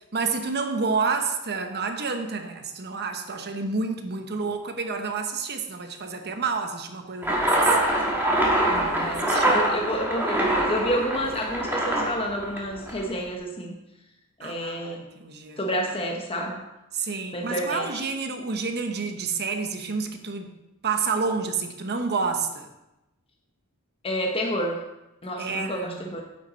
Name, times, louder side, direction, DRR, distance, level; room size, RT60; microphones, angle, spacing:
voice 1, 0.1-7.7 8.7-9.6 14.4-15.6 16.9-20.5 20.8-22.7 25.4-26.0, right 4 dB, 50° right, 6 dB, 1.0 m, -29 dB
sound 1, 7.2-13.1, right 1 dB, 10° right, 1.6 m, -24 dB
voice 2, 9.0-13.8 14.4-15.0 15.6-16.6 17.3-18.0 24.0-24.8 25.2-26.2, equal, 25° left, 1 dB, 0.9 m, -29 dB
9.0 x 7.5 x 4.1 m, 0.96 s
head